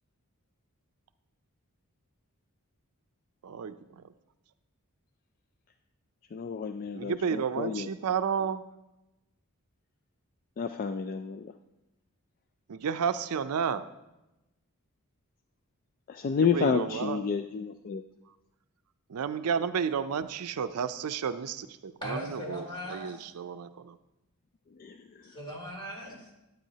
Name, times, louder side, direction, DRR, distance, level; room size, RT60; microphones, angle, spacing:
voice 1, 3.4-3.8 6.9-8.6 12.7-13.8 16.4-17.2 19.1-24.0, right 7 dB, 80° right, 12 dB, 0.4 m, -31 dB
voice 2, 6.3-7.9 10.6-11.5 16.1-18.0 24.8-24.9, left 6 dB, 40° left, 8 dB, 0.3 m, -30 dB
voice 3, 22.0-23.3 25.2-26.3, equal, 25° left, -4 dB, 3.1 m, -39 dB
12.0 x 8.9 x 2.8 m, 0.95 s
head